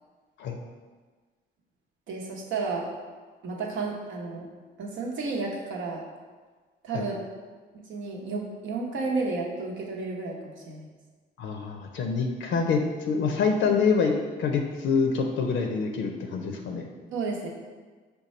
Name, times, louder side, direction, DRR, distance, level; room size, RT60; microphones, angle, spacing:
voice 1, 2.1-2.9 3.4-4.5 4.8-6.0 6.8-7.3 7.9-10.9 17.1-17.5, right 3 dB, 75° right, -1 dB, 0.9 m, -32 dB
voice 2, 11.4-14.1 14.4-16.9, left 5 dB, 75° left, 2 dB, 0.5 m, -26 dB
5.2 x 2.2 x 4.2 m, 1.4 s
cardioid pair, 90°, 20 cm